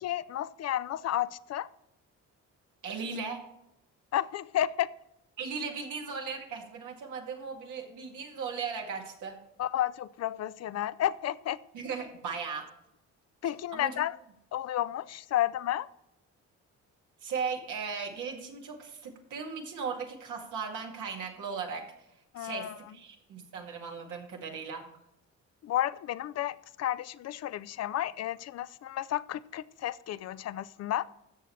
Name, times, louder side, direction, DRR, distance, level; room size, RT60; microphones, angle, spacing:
voice 1, 0.0-1.7 4.1-4.9 9.6-11.6 13.4-14.2 14.5-15.9 22.3-22.7 25.6-31.0, left 12 dB, 60° left, 0.5 m, -32 dB
voice 2, 2.8-3.4 5.4-9.4 11.7-12.7 13.7-13.9 17.2-21.8 22.4-24.9, right 5 dB, 80° right, 2.2 m, -37 dB
13.5 x 7.3 x 3.2 m
cardioid pair, 90°, 30 cm